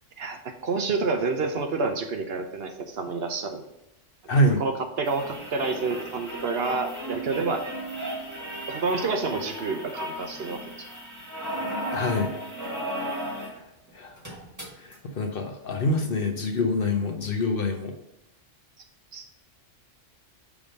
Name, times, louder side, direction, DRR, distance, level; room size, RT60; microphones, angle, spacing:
voice 1, 0.2-3.6 4.6-4.7 5.0-7.6 8.7-10.9 19.1-19.2, right 4 dB, 60° right, 5 dB, 0.9 m, -28 dB
voice 2, 4.3-4.6 11.9-12.3 13.4-13.6 13.9-14.2 14.8-17.9, left 1 dB, 55° left, 4 dB, 0.9 m, -26 dB
sound 1, 5.0-13.6 13.9-14.0 14.2-14.9 15.9-16.0, right 1 dB, 15° right, 1.7 m, -35 dB
6.0 x 3.6 x 5.2 m, 0.86 s
omnidirectional pair, 1.3 m